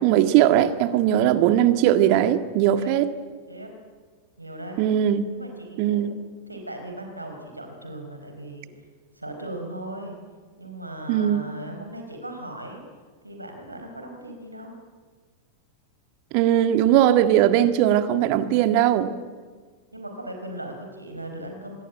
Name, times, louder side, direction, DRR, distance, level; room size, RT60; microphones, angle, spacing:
voice 1, 0.0-3.1 4.8-5.3 5.8-6.1 11.1-11.5 16.3-19.1, right 11 dB, 45° right, 10 dB, 1.8 m, -19 dB
voice 2, 4.4-4.8 5.3-6.0 6.5-8.7 9.2-10.2 10.6-12.8 13.2-14.7 19.9-21.8, right 1 dB, 85° right, 4 dB, 4.6 m, -38 dB
25.5 x 22.0 x 9.0 m, 1.5 s
figure-of-eight pair, 90°, 0 cm